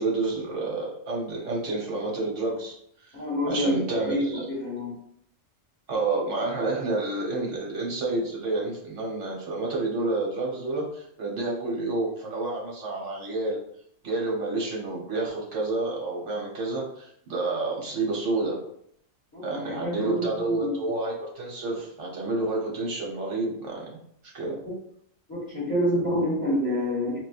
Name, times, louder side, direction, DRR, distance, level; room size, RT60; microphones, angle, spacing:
voice 1, 0.0-2.8 3.0-3.1 3.4-4.5 5.9-13.6 14.0-18.6 19.4-23.9 24.3-24.6, right 2 dB, 65° right, -2 dB, 1.3 m, -29 dB
voice 2, 3.1-3.8 4.1-4.9 19.3-20.8 25.3-27.2, equal, 20° left, -8 dB, 1.2 m, -27 dB
4.1 x 2.3 x 2.4 m, 0.69 s
omnidirectional pair, 1.4 m